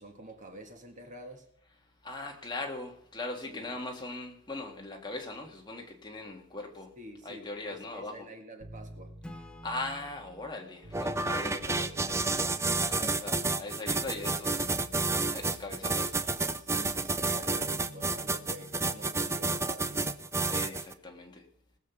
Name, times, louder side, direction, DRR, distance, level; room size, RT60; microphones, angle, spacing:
voice 1, 0.0-1.5 3.5-3.7 7.0-9.1 16.6-20.1, right 1 dB, 35° right, 4 dB, 1.8 m, -48 dB
voice 2, 2.0-6.9 7.2-8.3 9.6-14.8 15.3-16.2 20.5-21.4, left 2 dB, 20° left, 2 dB, 1.7 m, -40 dB
sound 1, 8.6-11.3 11.6-13.6 13.9-17.3 17.6-20.2 20.5-20.6, right 1 dB, 85° right, 2.8 m, -51 dB
Acoustic guitar / Strum, 9.2-12.8, left 1 dB, 5° left, 1.1 m, -52 dB
sound 2, 10.9-20.9, right 3 dB, 15° right, 0.5 m, -30 dB
19.0 x 6.5 x 7.0 m, 0.71 s
head